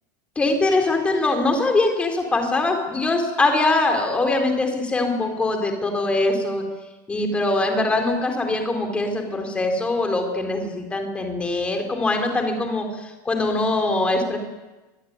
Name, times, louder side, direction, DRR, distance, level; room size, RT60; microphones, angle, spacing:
voice 1, 0.4-6.6 7.1-14.4, left 2 dB, 10° left, 3 dB, 4.0 m, -22 dB
24.0 x 22.5 x 9.7 m, 1.2 s
supercardioid pair, 170°, 11 cm